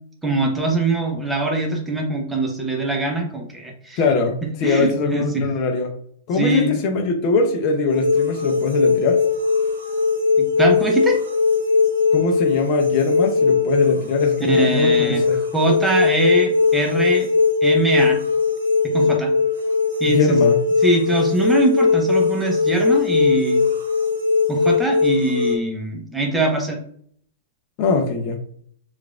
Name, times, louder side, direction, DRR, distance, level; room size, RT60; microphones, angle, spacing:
voice 1, 0.2-4.0 4.6-5.4 6.3-6.7 10.4-11.2 14.5-17.3 17.6-18.2 18.8-19.3 20.0-20.4 20.8-23.6 24.5-26.8, right 2 dB, 10° right, 1 dB, 0.8 m, -22 dB
voice 2, 4.0-5.9 6.3-9.2 12.1-15.4 20.1-20.6 27.8-28.4, left 4 dB, 45° left, 3 dB, 0.6 m, -22 dB
sound 1, 7.9-25.6, left 4 dB, 80° right, 0.8 m, -19 dB
4.6 x 2.5 x 2.4 m, 0.62 s
hypercardioid pair, 105°, 0 cm